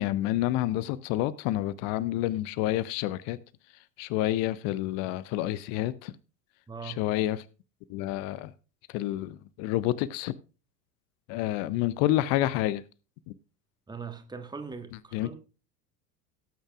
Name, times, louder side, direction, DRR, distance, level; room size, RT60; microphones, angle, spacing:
voice 1, 0.0-3.4 4.0-6.1 6.8-7.4 7.9-8.5 8.9-10.3 11.3-12.8 13.3-13.4 15.1-15.3, left 14 dB, 35° left, 0.5 m, -28 dB
voice 2, 6.7-7.1 13.9-15.4, right 5 dB, 10° right, 1.4 m, -41 dB
18.0 x 8.8 x 2.4 m
figure-of-eight pair, 75°, 49 cm